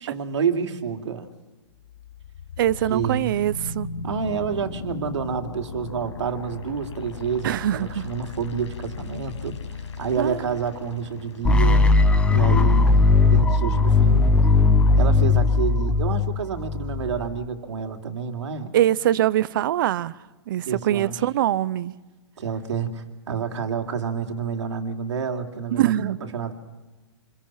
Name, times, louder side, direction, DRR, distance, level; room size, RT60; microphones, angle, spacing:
voice 1, 0.0-1.3 2.9-3.3 4.0-9.5 10.0-11.9 12.3-14.3 15.0-18.7 20.6-21.2 22.4-26.5, right 6 dB, 75° right, 2.9 m, -29 dB
sound 1, 1.7-13.7, left 3 dB, 85° left, 5.5 m, -37 dB
voice 2, 2.6-3.9 7.4-8.1 10.2-10.4 18.7-20.2 20.5-21.9 25.7-26.2, right 12 dB, 45° right, 0.7 m, -23 dB
sound 2, 11.4-17.4, left 3 dB, 5° left, 0.9 m, -18 dB
29.0 x 23.0 x 5.9 m
hypercardioid pair, 155°, 15 cm